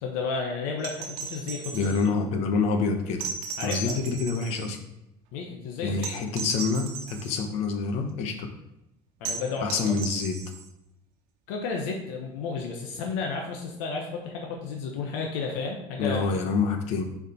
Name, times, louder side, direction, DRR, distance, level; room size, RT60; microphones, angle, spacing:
voice 1, 0.0-1.9 3.6-3.9 5.3-6.2 9.2-9.7 11.5-16.2, left 4 dB, 85° left, 1 dB, 1.1 m, -32 dB
sound 1, 0.8-2.1 3.2-4.7 6.0-7.3 9.2-10.7 12.5-12.6, right 5 dB, 75° right, 1.1 m, -36 dB
voice 2, 1.7-3.3 3.6-4.8 5.8-8.5 9.6-10.4 16.0-17.0, left 4 dB, 60° left, 5 dB, 1.1 m, -27 dB
6.8 x 5.0 x 4.4 m, 0.88 s
cardioid pair, 150°, 12 cm